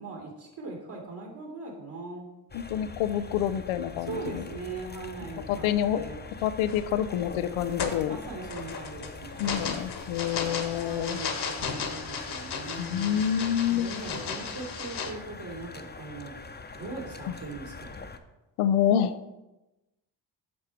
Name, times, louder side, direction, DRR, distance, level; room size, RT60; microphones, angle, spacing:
voice 1, 0.0-2.3 4.1-5.7 5.9-6.2 7.8-9.6 10.7-13.2 13.7-16.3 16.7-17.9, right 3 dB, 55° right, -1 dB, 2.5 m, -40 dB
voice 2, 2.5-4.4 5.5-6.0 6.4-8.2 9.4-11.2 12.8-13.9 17.3-17.4 18.6-19.2, left 10 dB, 80° left, 12 dB, 0.6 m, -27 dB
sound 1, 2.5-18.2, left 3 dB, 20° left, 0.9 m, -43 dB
sound 2, 6.7-7.0 7.5-15.1, left 5 dB, 55° left, 1.4 m, -35 dB
8.5 x 5.7 x 4.5 m, 1.0 s
supercardioid pair, 50°, 49 cm